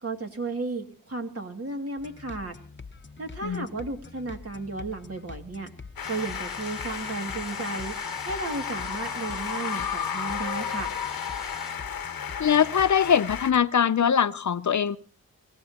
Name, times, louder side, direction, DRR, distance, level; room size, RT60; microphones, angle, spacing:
voice 1, 0.0-2.6 3.2-5.7 6.1-8.0 8.2-10.9, right 3 dB, 40° right, 2.5 m, -34 dB
sound 1, 2.0-13.6, left 4 dB, 35° left, 0.9 m, -45 dB
sound 2, 6.0-13.5, left 7 dB, 75° left, 1.1 m, -33 dB
sound 3, 6.0-11.7, equal, ahead, 1.4 m, -46 dB
voice 2, 12.4-15.0, left 8 dB, 55° left, 0.6 m, -22 dB
25.5 x 15.5 x 2.9 m
cardioid pair, 50°, 35 cm